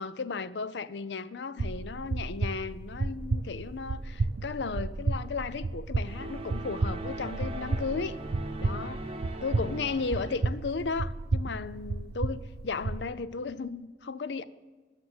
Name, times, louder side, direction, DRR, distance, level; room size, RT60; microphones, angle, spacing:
voice 1, 0.0-8.2 8.6-9.1 9.4-14.4, left 4 dB, 70° left, 0.5 m, -35 dB
sound 1, 1.6-13.0, right 3 dB, 65° right, 0.5 m, -32 dB
sound 2, 6.1-10.7, right 2 dB, 35° right, 0.8 m, -40 dB
10.5 x 6.5 x 7.8 m
head